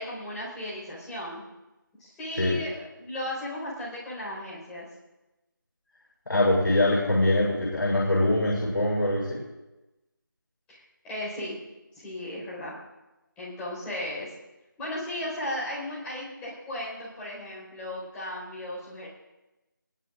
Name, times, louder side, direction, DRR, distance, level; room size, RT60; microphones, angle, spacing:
voice 1, 0.0-1.4 2.0-2.7 3.0-4.9 10.7-11.6 11.9-12.7 13.4-14.3 14.8-19.1, left 1 dB, 5° left, -7 dB, 5.1 m, -35 dB
voice 2, 6.3-9.4, left 1 dB, 70° left, -5 dB, 6.6 m, -23 dB
22.0 x 17.5 x 2.6 m, 1.0 s
figure-of-eight pair, 165°, 11 cm